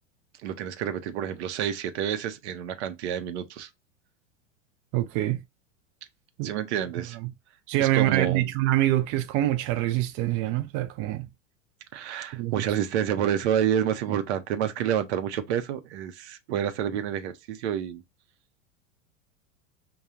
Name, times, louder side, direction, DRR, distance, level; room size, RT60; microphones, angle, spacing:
voice 1, 0.4-3.7 6.4-7.2 7.8-8.4 11.9-18.0, right 9 dB, 60° right, 0.8 m, -29 dB
voice 2, 4.9-5.4 6.4-6.5 7.2-7.3 7.7-11.3 12.3-12.5, right 14 dB, 35° right, 0.4 m, -25 dB
5.5 x 2.3 x 2.4 m
hypercardioid pair, 90°, 37 cm